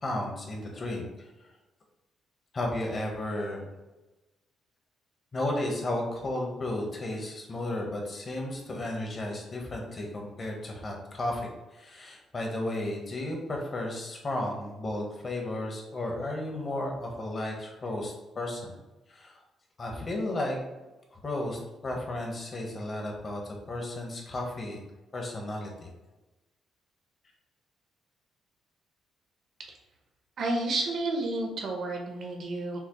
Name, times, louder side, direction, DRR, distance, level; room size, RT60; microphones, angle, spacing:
voice 1, 0.0-1.0 2.5-3.7 5.3-18.7 19.1-19.4 19.8-20.6 21.1-23.4 23.7-24.8 25.1-25.9, left 1 dB, 40° left, 0 dB, 1.1 m, -33 dB
voice 2, 30.4-32.8, right 2 dB, 65° right, 1 dB, 0.9 m, -30 dB
5.7 x 2.0 x 3.0 m, 1.1 s
cardioid pair, 90°, 0 cm